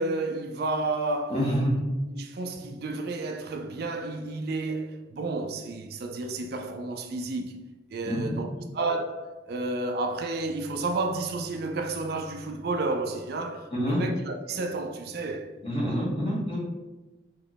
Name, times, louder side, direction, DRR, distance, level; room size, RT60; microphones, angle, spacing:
voice 1, 0.0-1.4 2.1-7.6 7.9-15.5, right 2 dB, 60° right, 0.4 m, -31 dB
voice 2, 1.3-1.8 8.0-8.3 8.6-8.7 13.7-14.0 15.6-16.6, equal, 30° left, 1.4 m, -27 dB
3.4 x 3.0 x 3.8 m
head